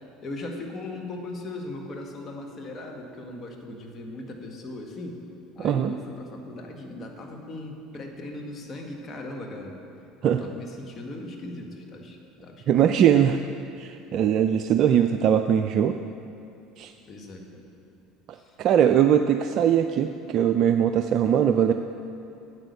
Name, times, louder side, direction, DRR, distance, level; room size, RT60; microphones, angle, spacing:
voice 1, 0.2-5.2 5.6-9.8 10.2-12.9 17.1-17.6 18.3-18.6, left 2 dB, 40° left, 2 dB, 1.7 m, -38 dB
voice 2, 5.6-5.9 10.2-10.4 12.7-13.4 13.8-16.0 16.8-16.9 18.3-21.7, right 9 dB, 55° right, 7 dB, 0.4 m, -21 dB
9.2 x 8.6 x 6.5 m, 2.7 s
hypercardioid pair, 70°, 0 cm